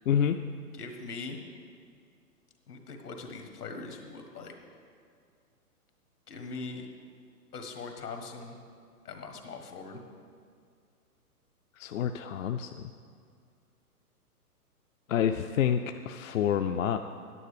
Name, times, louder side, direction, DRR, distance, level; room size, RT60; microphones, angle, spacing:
voice 1, 0.1-0.4 11.8-12.9 15.1-17.0, left 9 dB, 60° left, 7 dB, 0.5 m, -28 dB
voice 2, 0.7-1.4 2.7-4.5 6.3-6.9 7.5-8.6 9.0-10.0, left 4 dB, 75° left, 5 dB, 1.7 m, -41 dB
9.8 x 9.7 x 5.0 m, 2.2 s
hypercardioid pair, 125°, 46 cm